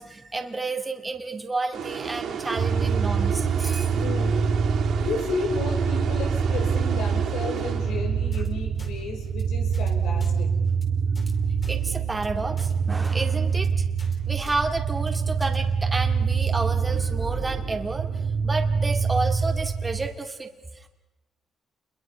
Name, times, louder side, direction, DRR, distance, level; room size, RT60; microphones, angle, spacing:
voice 1, 0.0-3.9 11.7-13.7 14.3-18.1 18.4-20.5, right 3 dB, 20° right, 4 dB, 2.3 m, -30 dB
sound 1, 1.7-8.4, right 7 dB, 70° right, 3.9 m, -32 dB
sound 2, 2.6-20.1, right 6 dB, 55° right, 2.3 m, -25 dB
voice 2, 3.9-4.4 4.9-10.5, left 4 dB, 90° left, 3 dB, 5.3 m, -33 dB
sound 3, 8.3-8.5 8.8-8.9 9.2-9.4 9.7-9.9 10.2-10.3 10.7-10.8 11.2-11.3 11.6-11.8 12.1-12.3 12.6-12.7 13.0-13.2 13.5-13.7 14.0-14.2 14.5-14.6 14.9-15.1 15.4-15.6, left 3 dB, 35° left, 4.7 m, -48 dB
29.0 x 22.0 x 5.7 m, 1.0 s
cardioid pair, 90°, 0 cm